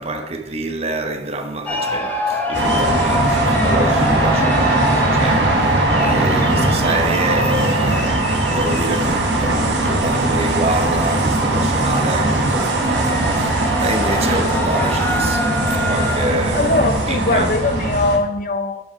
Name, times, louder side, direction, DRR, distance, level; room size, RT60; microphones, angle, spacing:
voice 1, 0.0-8.2 8.5-13.5 13.8-16.6 17.1-17.5, right 2 dB, 35° right, 0.9 m, -26 dB
sound 1, 1.7-16.8, left 1 dB, 10° left, 1.0 m, -26 dB
sound 2, 2.5-18.2, right 2 dB, 85° right, 1.5 m, -19 dB
voice 2, 14.1-14.6 16.5-18.8, left 2 dB, 50° left, 0.7 m, -21 dB
8.4 x 5.7 x 5.6 m
head